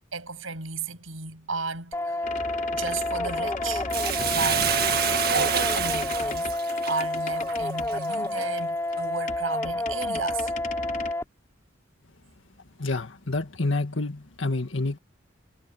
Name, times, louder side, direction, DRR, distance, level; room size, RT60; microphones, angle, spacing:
voice 1, 0.1-2.1 2.7-3.9 4.3-4.8 5.3-6.5 6.9-10.5, right 4 dB, 85° right, 7.9 m, -33 dB
sound 1, 1.9-11.2, left 1 dB, 15° left, 3.6 m, -29 dB
sound 2, 2.2-8.6 8.9-9.0 9.3-11.1, left 3 dB, 40° left, 4.1 m, -37 dB
Bathtub (filling or washing), 3.9-8.4 9.0-9.1, right 8 dB, 50° right, 1.7 m, -28 dB
voice 2, 12.8-15.0, left 2 dB, 70° left, 1.8 m, -28 dB
head